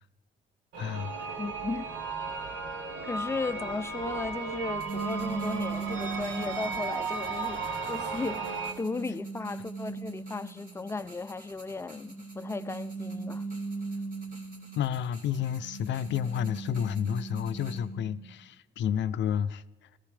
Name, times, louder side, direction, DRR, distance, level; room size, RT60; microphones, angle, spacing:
sound 1, 0.7-8.7, right 4 dB, 85° right, 1.3 m, -35 dB
voice 1, 0.8-1.1 14.8-19.9, left 9 dB, 65° left, 0.5 m, -31 dB
voice 2, 1.4-1.9 3.1-13.4, left 3 dB, 15° left, 0.4 m, -36 dB
sound 2, 4.8-17.8, right 2 dB, 45° right, 3.1 m, -55 dB
sound 3, 4.9-7.0 7.7-10.8 11.9-14.9 15.4-18.3, right 4 dB, 10° right, 0.8 m, -39 dB
14.5 x 14.0 x 3.3 m
cardioid pair, 90°, 20 cm